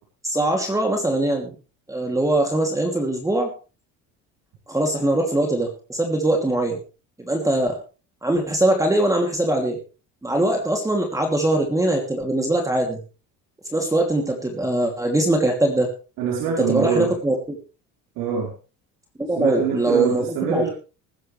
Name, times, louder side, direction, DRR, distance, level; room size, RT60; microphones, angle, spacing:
voice 1, 0.2-1.5 1.9-3.5 4.7-6.8 7.2-7.8 8.2-9.8 10.2-13.0 13.7-15.9 16.7-17.6 19.2-20.7, right 1 dB, 10° right, 3 dB, 2.8 m, -22 dB
voice 2, 16.2-17.1 18.2-18.5 19.4-20.7, right 7 dB, 80° right, -3 dB, 4.8 m, -24 dB
20.5 x 10.5 x 3.4 m, 0.33 s
cardioid pair, 115°, 33 cm